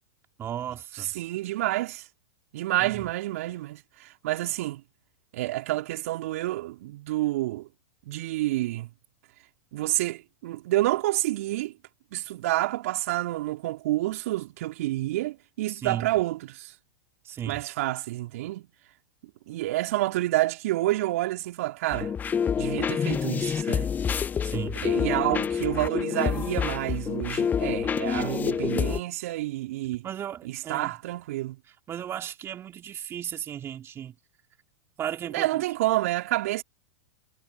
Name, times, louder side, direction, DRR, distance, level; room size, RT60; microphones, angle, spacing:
voice 1, 0.4-1.1 2.8-3.0 15.7-16.1 17.2-17.6 24.4-24.8 30.0-30.9 31.9-34.1 35.0-35.6, right 10 dB, 30° right, 2.7 m, -35 dB
voice 2, 0.9-2.0 2.5-4.8 5.3-7.7 8.0-8.9 9.7-11.7 12.1-16.7 17.5-18.7 19.5-22.1 22.6-23.9 24.8-30.1 30.4-31.6 35.3-36.6, right 17 dB, 60° right, 3.4 m, -29 dB
sound 1, 21.9-29.0, left 7 dB, 20° left, 0.6 m, -27 dB
figure-of-eight pair, 95°, 9 cm